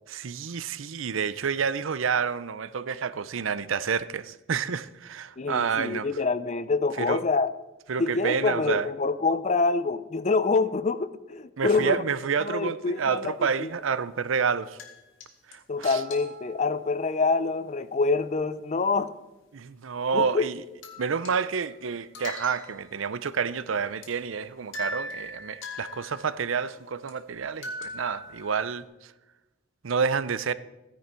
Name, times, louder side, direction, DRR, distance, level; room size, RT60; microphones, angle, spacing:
voice 1, 0.1-6.1 7.0-7.2 7.9-8.9 11.6-14.8 15.5-16.0 19.5-20.6 21.0-28.8 29.8-30.5, right 6 dB, 80° right, 0.6 m, -29 dB
voice 2, 5.4-7.5 8.0-12.0 12.4-13.7 15.7-19.1 20.1-20.5, left 4 dB, 35° left, 0.5 m, -26 dB
sound 1, 12.8-13.2 14.8-15.3 15.5-15.6 15.8-17.1 20.5-20.6 20.8-21.9 22.1-23.0 23.3-23.4 24.0-24.1 24.7-26.8 27.1-27.2 27.6-28.8, left 1 dB, 70° left, 2.1 m, -41 dB
15.5 x 10.0 x 4.5 m
head